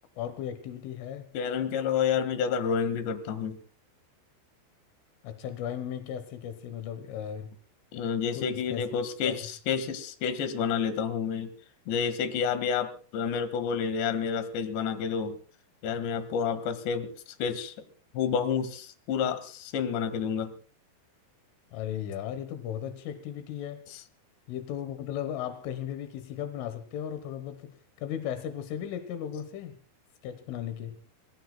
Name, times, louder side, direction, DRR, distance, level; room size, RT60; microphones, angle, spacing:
voice 1, 0.2-1.3 5.2-7.5 8.4-8.9 9.3-9.4 21.7-23.9 24.5-29.8 30.2-31.0, left 10 dB, 85° left, 3.7 m, -36 dB
voice 2, 1.3-3.6 7.9-11.5 11.9-15.4 15.8-17.1 17.4-17.7 18.1-20.5, left 7 dB, 70° left, 3.9 m, -29 dB
27.0 x 21.5 x 2.3 m
omnidirectional pair, 5.6 m